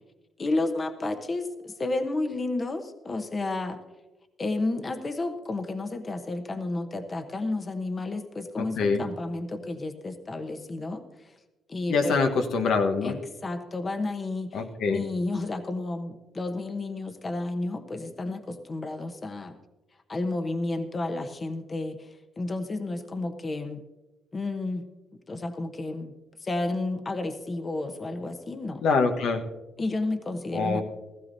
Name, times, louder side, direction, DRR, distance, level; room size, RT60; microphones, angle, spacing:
voice 1, 0.4-3.8 4.4-11.3 11.7-12.2 13.0-19.6 20.1-23.8 24.3-24.9 25.3-26.1 26.4-28.8 29.8-30.8, left 2 dB, 30° left, 8 dB, 1.0 m, -31 dB
voice 2, 8.6-9.0 11.9-13.2 14.5-15.0 28.8-29.4 30.5-30.8, left 4 dB, 75° left, 5 dB, 1.2 m, -25 dB
16.0 x 14.5 x 2.7 m, 1.1 s
cardioid pair, 90°, 0 cm